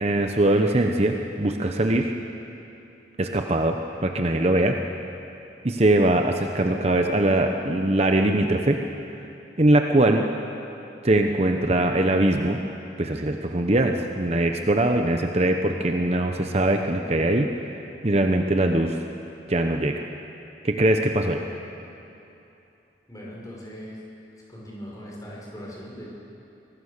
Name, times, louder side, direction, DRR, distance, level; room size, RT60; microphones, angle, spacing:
voice 1, 0.0-2.1 3.2-4.8 5.6-8.8 9.6-10.2 11.0-12.6 13.0-17.5 18.0-19.0 19.5-20.1 20.6-21.4, right 1 dB, 35° right, 4 dB, 0.9 m, -21 dB
voice 2, 23.1-24.0 24.5-26.1, equal, 20° left, -5 dB, 5.7 m, -39 dB
24.5 x 18.5 x 6.7 m, 2.9 s
head